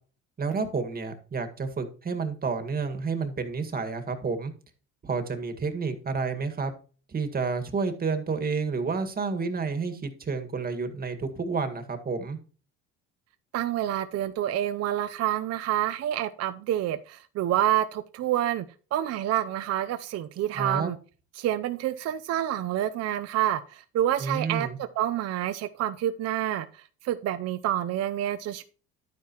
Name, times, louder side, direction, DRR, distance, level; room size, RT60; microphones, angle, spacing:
voice 1, 0.4-4.5 5.0-6.7 7.1-12.4 20.5-20.9 24.2-24.8, right 4 dB, 30° right, 1.8 m, -30 dB
voice 2, 13.5-18.6 18.9-21.0 21.4-24.7 25.0-28.6, right 12 dB, 55° right, 0.7 m, -28 dB
11.5 x 9.5 x 3.0 m
cardioid pair, 105°, 31 cm